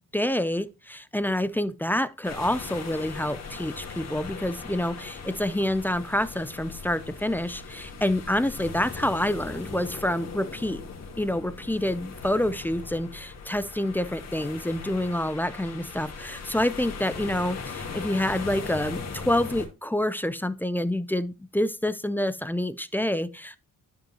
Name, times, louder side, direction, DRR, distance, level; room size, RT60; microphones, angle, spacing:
voice 1, 0.1-10.8 11.2-23.6, left 1 dB, 5° left, 0.3 m, -27 dB
sound 1, 2.2-19.7, left 5 dB, 55° left, 2.1 m, -39 dB
11.5 x 5.4 x 2.8 m
cardioid pair, 140°, 32 cm